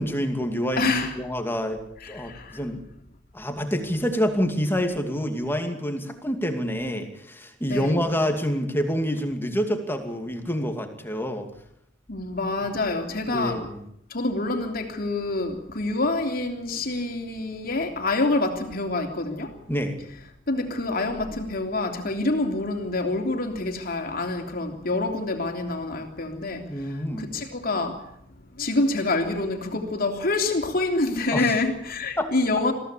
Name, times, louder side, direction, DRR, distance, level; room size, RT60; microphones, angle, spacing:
voice 1, 0.0-1.8 2.1-2.8 3.3-11.5 13.3-13.8 19.7-20.0 26.7-27.3 31.3-31.5 32.2-32.3, equal, 10° left, 2.5 m, -27 dB
voice 2, 0.8-1.2 2.0-2.7 7.7-8.1 12.1-13.7 14.1-19.6 20.5-28.2 28.5-32.7, left 2 dB, 50° left, 3.2 m, -27 dB
22.5 x 16.0 x 8.4 m
head